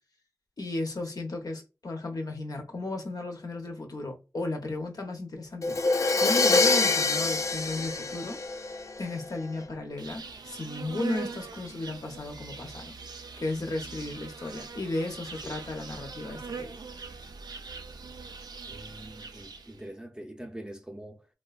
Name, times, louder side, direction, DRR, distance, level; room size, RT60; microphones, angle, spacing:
voice 1, 0.6-5.8 6.2-8.4 9.0-12.9 13.4-16.7, left 2 dB, 65° left, 0.7 m, -35 dB
Crash cymbal, 5.6-9.4, left 3 dB, 50° left, 0.3 m, -25 dB
Insect, 10.0-19.8, right 4 dB, 90° right, 0.4 m, -42 dB
voice 2, 18.7-21.3, right 1 dB, 10° right, 0.5 m, -44 dB
3.2 x 2.1 x 2.3 m
wide cardioid pair, 80°, 7 cm